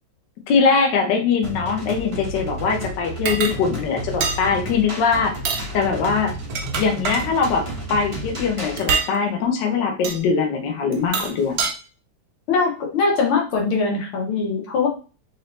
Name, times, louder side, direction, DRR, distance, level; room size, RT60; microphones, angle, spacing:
voice 1, 0.5-5.3 5.7-6.3 6.8-7.6 7.9-11.6, left 5 dB, 65° left, 3 dB, 1.3 m, -21 dB
sound 1, 1.4-8.8, right 1 dB, 40° right, 0.4 m, -32 dB
sound 2, 3.3-3.6 4.2-4.4 5.3-5.7 6.3-7.2 8.8-9.1 10.0-10.2 10.9-11.7, right 5 dB, 65° right, 0.9 m, -25 dB
voice 2, 12.5-14.9, left 4 dB, 85° left, 0 dB, 2.0 m, -21 dB
4.2 x 2.7 x 3.1 m, 0.35 s
omnidirectional pair, 2.3 m